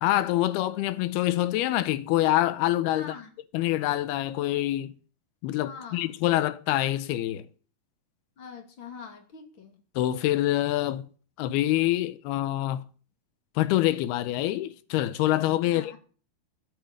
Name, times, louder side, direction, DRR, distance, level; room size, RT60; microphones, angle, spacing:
voice 1, 0.0-3.1 3.5-4.9 5.4-7.5 10.0-11.1 11.4-12.8 13.6-16.0, left 14 dB, 90° left, 2.8 m, -26 dB
voice 2, 2.9-3.3 5.6-6.2 8.4-9.8 15.6-16.0, left 6 dB, 35° left, 2.9 m, -43 dB
15.5 x 7.7 x 8.7 m
omnidirectional pair, 4.4 m